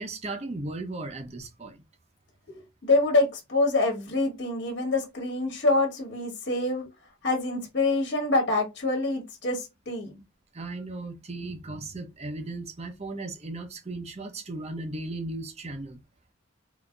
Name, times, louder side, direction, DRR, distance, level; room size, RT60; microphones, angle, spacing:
voice 1, 0.0-1.8 10.5-16.0, right 2 dB, 30° right, 0.7 m, -36 dB
voice 2, 2.5-6.8 7.2-10.1, left 2 dB, 55° left, 1.3 m, -26 dB
3.8 x 2.7 x 2.3 m
head